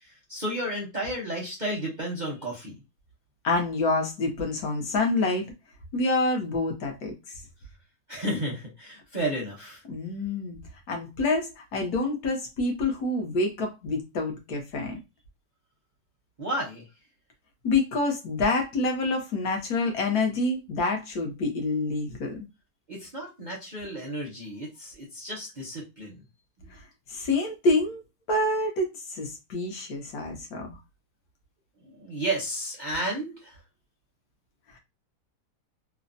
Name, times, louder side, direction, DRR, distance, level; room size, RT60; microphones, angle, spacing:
voice 1, 0.3-2.8 8.1-9.8 16.4-16.8 22.9-26.1 31.8-33.5, right 1 dB, 40° right, 0.7 m, -32 dB
voice 2, 3.4-5.5 5.9-7.1 9.9-10.6 10.9-15.0 17.6-22.4 27.1-28.0 28.3-28.8 29.1-30.7, left 2 dB, 65° left, 1.1 m, -27 dB
3.2 x 2.0 x 2.5 m
omnidirectional pair, 1.8 m